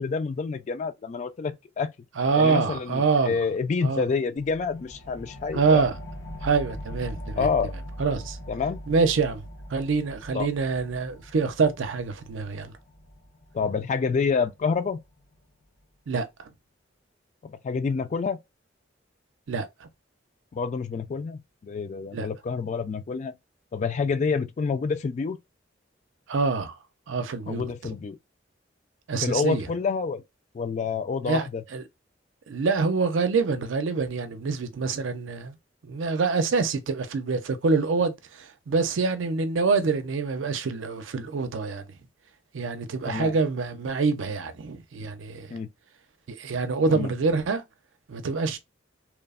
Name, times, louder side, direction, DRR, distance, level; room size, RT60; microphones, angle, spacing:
voice 1, 0.0-1.9 2.3-5.8 7.4-7.7 8.5-8.8 10.3-10.5 13.5-15.0 17.4-18.4 20.5-23.3 23.7-25.4 27.5-28.2 29.2-30.2 30.5-31.6 43.0-43.4 45.5-45.7 46.9-47.1, left 5 dB, 40° left, 0.3 m, -28 dB
voice 2, 2.2-3.4 3.8-4.1 5.5-5.9 6.4-7.5 8.0-8.4 8.9-9.4 9.7-12.7 16.1-16.3 19.5-19.9 22.1-22.3 26.3-26.8 27.1-27.7 29.1-29.7 31.3-31.8 32.5-35.5 35.8-41.9 42.5-45.6 46.3-47.6 48.1-48.6, right 4 dB, 90° right, 0.5 m, -26 dB
sound 1, 4.4-15.4, equal, 75° left, 1.0 m, -41 dB
3.0 x 2.0 x 2.3 m
head